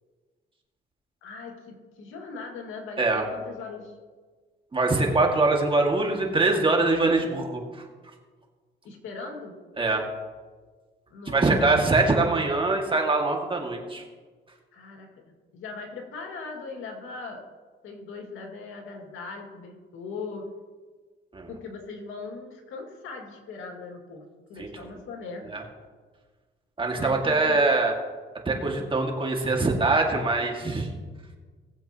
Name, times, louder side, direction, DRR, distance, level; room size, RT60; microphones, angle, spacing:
voice 1, 1.2-3.9 8.8-9.6 11.1-12.1 14.7-17.4 17.8-20.5 21.5-24.2 24.5-25.5 26.9-27.6 28.6-28.9, left 4 dB, 85° left, 1 dB, 2.1 m, -39 dB
voice 2, 4.7-7.8 9.8-10.0 11.3-14.0 21.3-21.5 24.6-24.7 25.5-25.6 26.8-27.9 28.5-30.9, right 3 dB, 25° right, 1 dB, 2.1 m, -23 dB
19.0 x 7.7 x 3.0 m, 1.4 s
cardioid pair, 90°, 20 cm